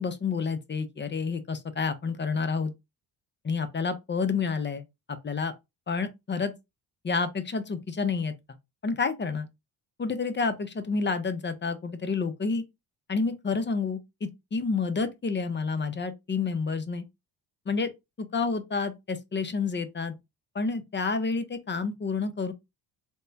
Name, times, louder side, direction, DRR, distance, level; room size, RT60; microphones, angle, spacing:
voice 1, 0.0-2.7 3.4-4.8 5.1-5.5 5.9-6.5 7.0-8.3 8.8-9.5 10.0-12.6 13.1-17.0 17.7-17.9 18.2-20.1 20.5-22.5, left 4 dB, 25° left, 0.5 m, -29 dB
3.5 x 2.1 x 2.6 m
supercardioid pair, 60°, 45 cm